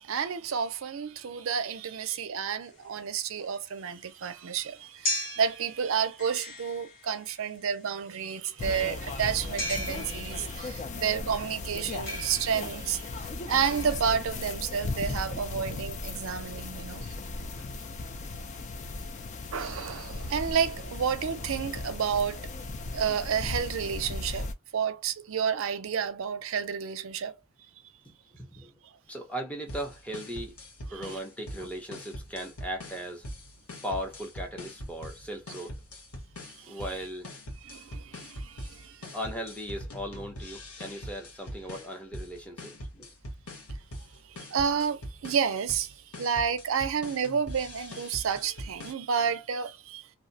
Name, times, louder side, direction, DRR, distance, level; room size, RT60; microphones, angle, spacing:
voice 1, 0.0-17.1 19.5-22.5 22.9-24.5 24.7-27.4 30.9-31.2 36.6-36.8 37.6-39.1 44.3-50.1, right 7 dB, 65° right, 0.4 m, -30 dB
sound 1, 2.7-14.6, left 1 dB, 55° left, 1.0 m, -39 dB
sound 2, 8.6-24.5, left 3 dB, 35° left, 0.3 m, -37 dB
voice 2, 28.4-28.7 29.1-30.5 30.9-33.2 33.8-35.7 36.7-37.3 39.1-43.1, equal, 5° left, 0.7 m, -37 dB
sound 3, 29.7-48.9, equal, 90° left, 1.0 m, -42 dB
2.6 x 2.1 x 2.6 m
head